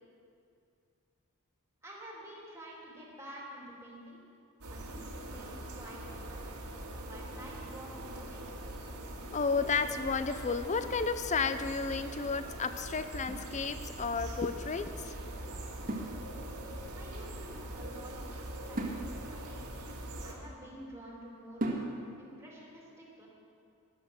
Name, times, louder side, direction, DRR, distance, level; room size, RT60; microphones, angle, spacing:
voice 1, 1.8-4.2 4.7-6.5 7.0-8.5 16.9-19.9 20.2-21.6 22.2-23.3, right 1 dB, 10° right, -4 dB, 2.8 m, -49 dB
sound 1, 4.6-20.3, right 1 dB, 85° right, 1.8 m, -43 dB
voice 2, 9.2-15.2, left 5 dB, 30° left, 11 dB, 0.6 m, -32 dB
sound 2, 13.3-14.2 15.9-16.8 18.8-20.8 21.6-22.3, right 1 dB, 40° right, 1.6 m, -39 dB
12.5 x 11.0 x 6.3 m, 2.5 s
head